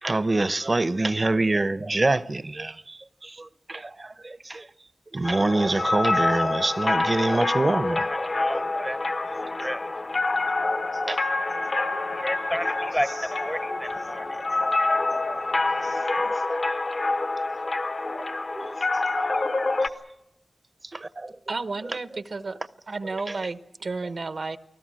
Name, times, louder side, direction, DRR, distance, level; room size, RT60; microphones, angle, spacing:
voice 1, 0.0-4.6 5.1-8.8 10.7-11.2 11.7-11.9 14.6-14.7 15.2-15.4 15.8-16.6 18.1-18.2 18.6-18.8 19.2-19.3 20.9-21.3 23.3-23.4, right 2 dB, 40° right, 0.7 m, -27 dB
sound 1, 5.2-19.9, left 2 dB, 60° left, 1.2 m, -27 dB
voice 2, 7.9-16.0, equal, 10° left, 0.7 m, -35 dB
voice 3, 21.5-22.6 22.9-24.6, right 3 dB, 75° right, 1.0 m, -32 dB
29.0 x 19.5 x 6.3 m
wide cardioid pair, 75°, 0 cm